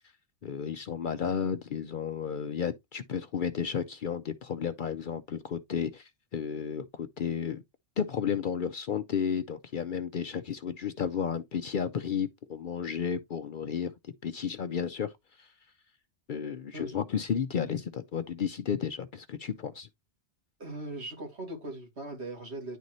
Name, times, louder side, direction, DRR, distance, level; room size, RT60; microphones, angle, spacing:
voice 1, 0.4-7.6 8.0-15.1 15.4-15.5 16.3-19.9, left 7 dB, 55° left, 0.6 m, -33 dB
voice 2, 20.6-22.8, right 1 dB, 70° right, 2.7 m, -39 dB
10.0 x 4.0 x 3.0 m
omnidirectional pair, 1.2 m